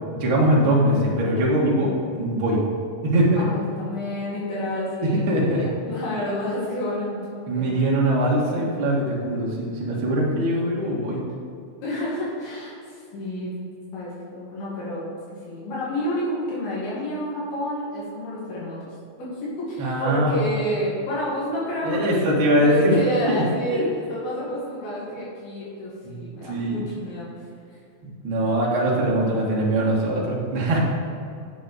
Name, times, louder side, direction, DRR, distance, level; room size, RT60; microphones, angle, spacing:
voice 1, 0.1-2.6 3.0-3.5 5.0-5.7 7.5-11.2 19.8-20.4 21.8-23.0 23.3-23.4 23.7-23.8 26.0-26.8 28.2-30.8, right 1 dB, 45° right, -4 dB, 2.0 m, -22 dB
voice 2, 3.3-7.8 11.8-13.5 13.9-18.9 19.2-22.2 22.6-27.3, equal, 85° left, -8 dB, 3.9 m, -29 dB
8.1 x 7.4 x 5.0 m, 2.4 s
omnidirectional pair, 4.2 m